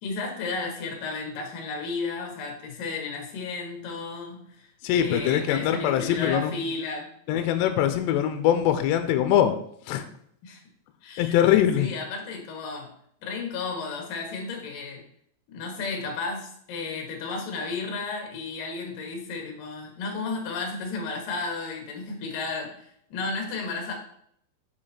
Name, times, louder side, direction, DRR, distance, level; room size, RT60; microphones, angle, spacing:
voice 1, 0.0-4.7 5.0-7.1 10.4-10.6 11.0-11.4 11.8-12.9 13.2-15.0 15.5-23.9, left 4 dB, 60° left, 1 dB, 2.6 m, -33 dB
voice 2, 4.8-6.5 7.3-9.5 9.9-10.0 11.2-11.9, left 10 dB, 80° left, 8 dB, 2.6 m, -22 dB
8.2 x 4.8 x 4.4 m, 0.67 s
omnidirectional pair, 5.5 m